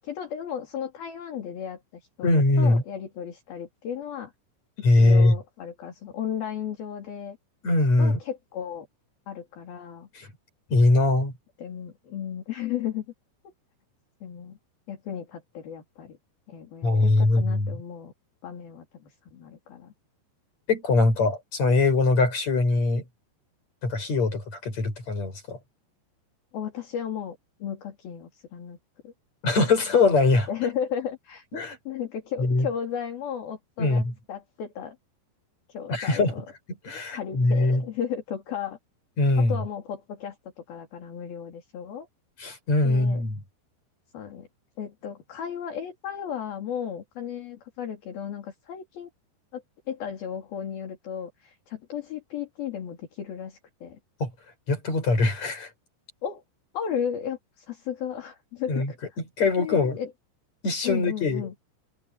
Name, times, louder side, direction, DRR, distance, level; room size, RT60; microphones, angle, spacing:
voice 1, 0.0-4.3 4.9-7.4 8.0-8.9 9.3-10.1 11.6-13.1 13.4-13.5 14.2-14.6 14.9-16.2 16.5-18.1 18.4-19.9 26.5-28.8 29.0-29.1 30.5-31.5 31.9-35.0 35.7-36.4 37.1-38.8 39.4-42.1 42.8-43.2 44.1-44.5 44.8-49.1 49.5-49.6 49.9-54.0 56.2-56.4 56.7-59.0 59.6-60.1 60.8-61.5, left 8 dB, 60° left, 5.0 m, -34 dB
voice 2, 2.2-2.8 4.8-5.4 7.6-8.2 10.1-10.3 10.7-11.3 16.8-17.7 20.7-23.0 23.8-25.6 29.4-30.5 31.5-31.8 32.4-32.7 33.8-34.1 35.9-36.4 36.8-37.8 39.2-39.6 42.4-43.4 54.2-54.3 54.7-55.7 58.7-58.9 59.4-60.0 60.6-61.5, left 2 dB, 40° left, 8.0 m, -22 dB
omnidirectional pair, 5.1 m